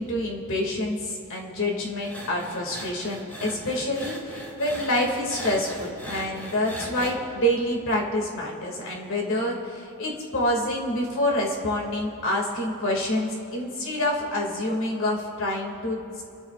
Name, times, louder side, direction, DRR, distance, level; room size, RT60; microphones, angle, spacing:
voice 1, 0.0-16.2, left 1 dB, 60° left, -1 dB, 2.3 m, -27 dB
sound 1, 2.0-7.1, equal, 10° left, 1.9 m, -39 dB
29.0 x 14.0 x 2.5 m, 2.7 s
head